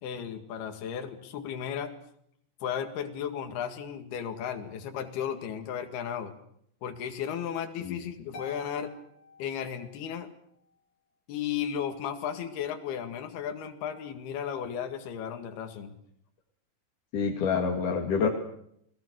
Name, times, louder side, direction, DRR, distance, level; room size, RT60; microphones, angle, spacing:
voice 1, 0.0-2.0 2.6-6.3 6.8-8.9 9.4-10.3 11.3-15.9, left 8 dB, 75° left, 6 dB, 3.9 m, -34 dB
Harp, 8.3-10.2, left 3 dB, 40° left, 7.5 m, -47 dB
voice 2, 17.1-18.3, left 5 dB, 55° left, 1 dB, 3.5 m, -27 dB
29.5 x 20.0 x 6.3 m, 0.71 s
omnidirectional pair, 4.7 m